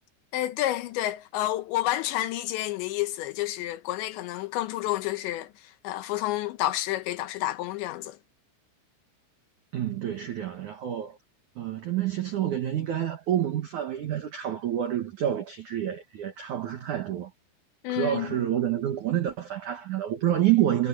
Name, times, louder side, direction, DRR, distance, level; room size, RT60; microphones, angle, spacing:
voice 1, 0.3-5.5 5.8-8.2 17.8-18.4, left 15 dB, 75° left, 2.9 m, -29 dB
voice 2, 9.7-11.2 11.6-17.3 17.9-20.9, right 11 dB, 75° right, 1.8 m, -28 dB
omnidirectional pair, 5.8 m